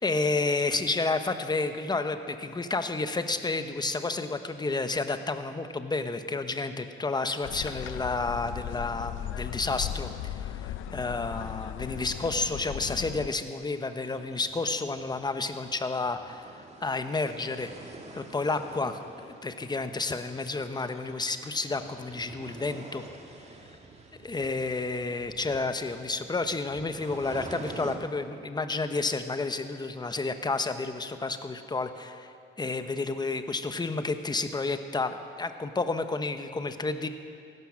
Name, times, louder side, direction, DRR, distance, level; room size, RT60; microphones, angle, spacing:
voice 1, 0.0-23.0 24.2-37.1, left 3 dB, 20° left, 9 dB, 1.0 m, -31 dB
sound 1, 7.4-13.3, left 11 dB, 90° left, 0.5 m, -37 dB
sound 2, 14.1-28.0, right 3 dB, 35° right, 1.9 m, -48 dB
16.0 x 12.0 x 6.3 m, 2.4 s
cardioid pair, 90°, 20 cm